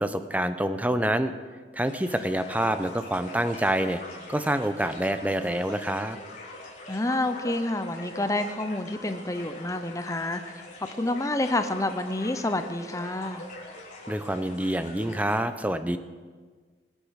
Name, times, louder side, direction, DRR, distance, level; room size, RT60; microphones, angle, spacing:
voice 1, 0.0-1.3 1.7-4.0 4.3-6.2 14.1-16.0, right 1 dB, 10° right, 10 dB, 0.8 m, -27 dB
sound 1, 1.8-15.4, left 1 dB, 45° left, 4.2 m, -43 dB
voice 2, 6.9-10.5 11.0-13.4, left 2 dB, 20° left, 9 dB, 0.8 m, -28 dB
24.5 x 8.5 x 6.5 m, 1.5 s
head